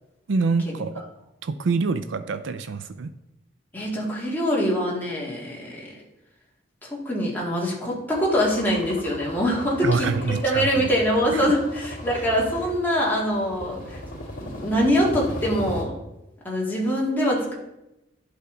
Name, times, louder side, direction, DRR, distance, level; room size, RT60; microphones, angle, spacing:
voice 1, 0.3-0.9 1.4-3.1 9.8-10.9 11.3-11.5, right 4 dB, 65° right, 11 dB, 0.4 m, -25 dB
voice 2, 3.7-5.9 6.9-14.0 14.4-15.9 16.4-17.5, equal, 10° left, -4 dB, 1.9 m, -24 dB
sound 1, 8.1-15.8, equal, 45° left, 2.0 m, -37 dB
11.0 x 5.6 x 3.8 m, 0.92 s
head